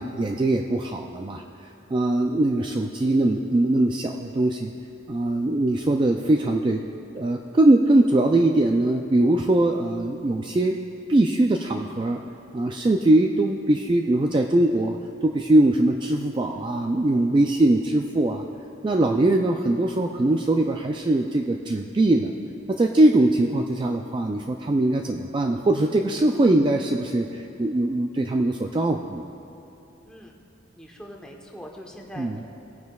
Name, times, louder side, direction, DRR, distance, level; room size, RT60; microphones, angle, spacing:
voice 1, 0.0-1.4 1.9-4.7 5.1-6.8 7.1-10.8 11.1-12.2 12.5-15.0 15.2-18.4 18.8-22.3 22.7-29.2 32.2-32.4, right 1 dB, 25° right, 2 dB, 0.3 m, -21 dB
voice 2, 30.0-30.4 30.8-32.5, equal, 5° left, 0 dB, 1.0 m, -42 dB
19.0 x 9.3 x 2.3 m, 2.8 s
head